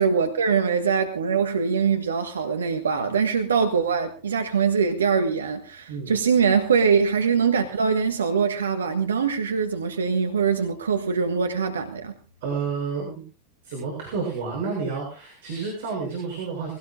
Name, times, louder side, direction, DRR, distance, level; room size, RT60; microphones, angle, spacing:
voice 1, 0.0-12.1, right 6 dB, 80° right, 1.5 m, -23 dB
voice 2, 12.4-13.2 13.6-16.7, right 5 dB, 65° right, 7.0 m, -30 dB
22.5 x 17.5 x 2.5 m
hypercardioid pair, 90°, 0 cm